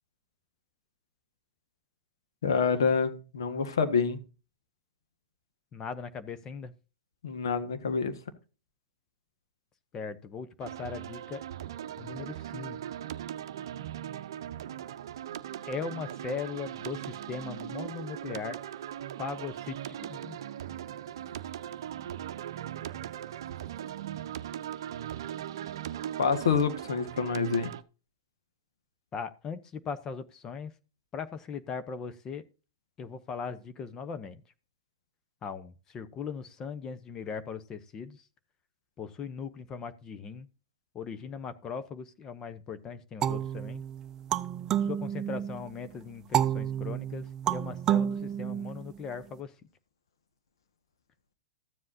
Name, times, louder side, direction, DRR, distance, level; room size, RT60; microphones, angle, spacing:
voice 1, 2.4-4.2 7.2-8.1 26.2-27.7, left 5 dB, 80° left, 1.5 m, -27 dB
voice 2, 5.7-6.7 9.9-11.4 12.0-12.8 15.7-18.6 19.2-20.4 29.1-30.7 31.1-32.4 33.0-34.4 35.4-38.2 39.0-40.5 40.9-43.8 44.8-49.5, left 5 dB, 25° left, 0.8 m, -39 dB
sound 1, 10.6-27.8, right 10 dB, 70° right, 0.6 m, -39 dB
sound 2, 43.2-45.7 46.3-49.1, right 10 dB, 25° right, 0.6 m, -30 dB
14.0 x 7.5 x 2.7 m
hypercardioid pair, 120°, 2 cm